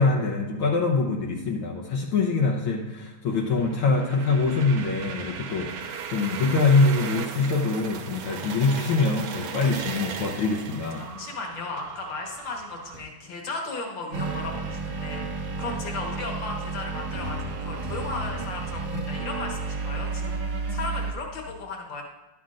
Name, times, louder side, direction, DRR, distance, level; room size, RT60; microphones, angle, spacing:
voice 1, 0.0-11.0, left 3 dB, 70° left, -1 dB, 1.3 m, -24 dB
sound 1, 3.3-13.0, right 7 dB, 85° right, 2.2 m, -37 dB
voice 2, 11.0-22.0, left 3 dB, 50° left, 1 dB, 1.6 m, -35 dB
sound 2, 14.1-21.1, right 3 dB, 65° right, 1.6 m, -31 dB
12.0 x 9.9 x 2.5 m, 1.1 s
omnidirectional pair, 3.5 m